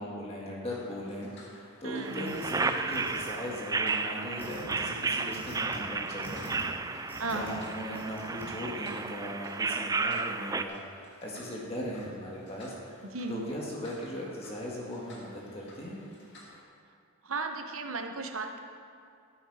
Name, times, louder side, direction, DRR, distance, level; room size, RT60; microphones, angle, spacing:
voice 1, 0.0-13.0 13.3-16.0, equal, 30° left, -4 dB, 1.9 m, -39 dB
sound 1, 0.7-16.6, left 1 dB, 55° left, 2.3 m, -55 dB
voice 2, 1.8-2.3 7.2-7.5 13.1-13.4 17.2-18.6, right 3 dB, 75° right, 5 dB, 1.1 m, -35 dB
sound 2, 2.0-10.6, right 4 dB, 15° right, 0.4 m, -33 dB
sound 3, 2.2-2.5 2.9-3.6 4.4-4.8 5.3-5.8 6.2-6.6 7.1-7.5 7.9-8.5, equal, 10° left, 3.0 m, -45 dB
16.5 x 8.8 x 4.9 m, 2.4 s
head